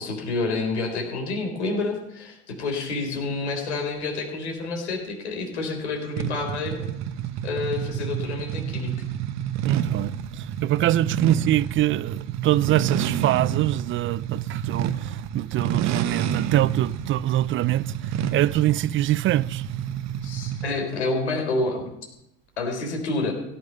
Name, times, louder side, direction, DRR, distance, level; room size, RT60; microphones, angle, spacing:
voice 1, 0.0-6.8 7.4-8.9 20.2-21.9 22.6-23.3, left 3 dB, 90° left, 4.0 m, -28 dB
sound 1, 6.2-20.8, right 9 dB, 55° right, 1.1 m, -29 dB
voice 2, 9.6-19.6, right 14 dB, 40° right, 0.5 m, -24 dB
16.5 x 10.5 x 5.5 m
hypercardioid pair, 80°, 33 cm